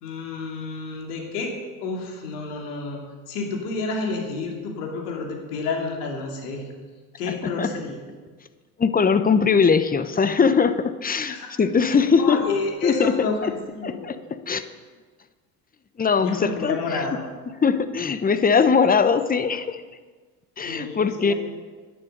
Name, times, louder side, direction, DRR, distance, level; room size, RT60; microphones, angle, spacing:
voice 1, 0.0-1.5 1.8-3.0 3.3-6.7 7.2-8.0 11.3-11.5 12.2-14.1 16.2-17.2 20.6-21.3, left 3 dB, 80° left, 1 dB, 2.8 m, -30 dB
voice 2, 7.3-7.7 8.8-12.4 12.8-13.5 13.8-14.7 16.0-17.2 17.6-19.8 20.6-21.3, left 5 dB, 20° left, 12 dB, 0.9 m, -21 dB
11.0 x 10.0 x 6.6 m, 1.4 s
hypercardioid pair, 80°, 46 cm